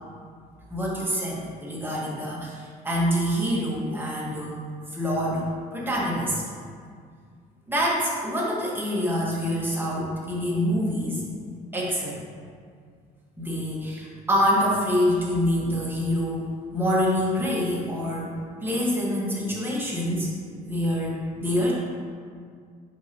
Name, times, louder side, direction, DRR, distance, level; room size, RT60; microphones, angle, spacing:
voice 1, 0.7-4.6 4.9-6.4 7.7-11.2 11.7-12.2 13.4-18.3 18.6-20.3 20.6-21.7, equal, 10° right, -5 dB, 1.5 m, -26 dB
7.1 x 4.8 x 3.0 m, 2.1 s
cardioid pair, 110°, 17 cm